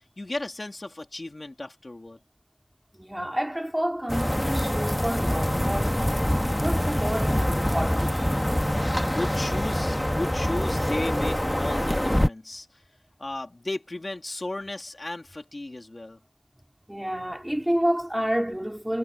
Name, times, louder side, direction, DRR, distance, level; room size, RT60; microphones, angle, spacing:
voice 1, 0.2-2.2 9.0-12.7 13.2-16.2, left 2 dB, 60° left, 2.8 m, -35 dB
voice 2, 3.0-6.0 6.6-8.2 16.9-19.0, equal, 15° right, 3.4 m, -29 dB
sound 1, 4.1-12.3, equal, 15° left, 1.8 m, -25 dB
wide cardioid pair, 40°, 0 cm